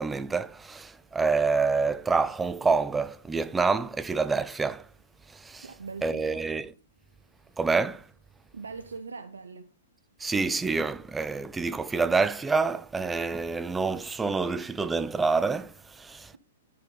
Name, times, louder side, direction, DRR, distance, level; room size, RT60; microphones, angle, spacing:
voice 1, 0.0-4.8 5.4-5.7 6.0-6.7 7.6-8.0 10.2-16.4, right 4 dB, 10° right, 0.4 m, -27 dB
voice 2, 5.6-6.4 8.5-9.7, right 4 dB, 85° right, 0.9 m, -41 dB
10.5 x 5.5 x 4.0 m
hypercardioid pair, 125°, 0 cm